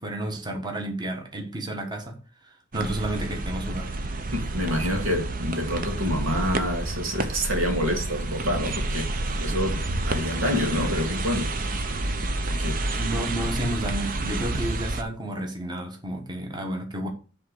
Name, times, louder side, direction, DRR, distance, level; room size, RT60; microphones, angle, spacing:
voice 1, 0.0-2.2 2.7-3.9 12.9-17.1, right 1 dB, 20° right, 1.4 m, -31 dB
sound 1, 2.7-15.0, right 2 dB, 45° right, 0.7 m, -29 dB
voice 2, 4.3-11.5 12.5-12.8, equal, 90° right, 2.0 m, -27 dB
7.7 x 3.6 x 6.5 m
head